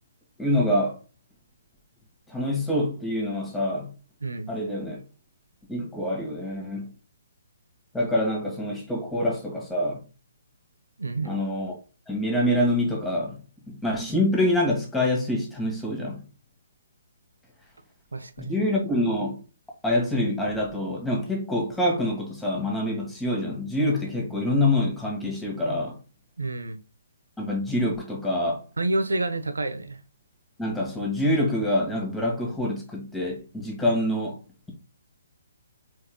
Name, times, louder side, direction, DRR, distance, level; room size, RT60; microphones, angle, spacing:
voice 1, 0.4-1.0 2.3-3.9 4.5-5.0 5.7-6.9 7.9-10.0 11.2-11.8 12.1-16.2 18.4-19.4 19.8-26.0 27.4-28.6 30.6-34.4, left 1 dB, 5° left, 1.6 m, -26 dB
voice 2, 11.0-11.4 18.1-18.5 26.4-26.8 28.8-30.0, right 2 dB, 75° right, 0.7 m, -28 dB
4.5 x 4.4 x 2.2 m
figure-of-eight pair, 130°, 0 cm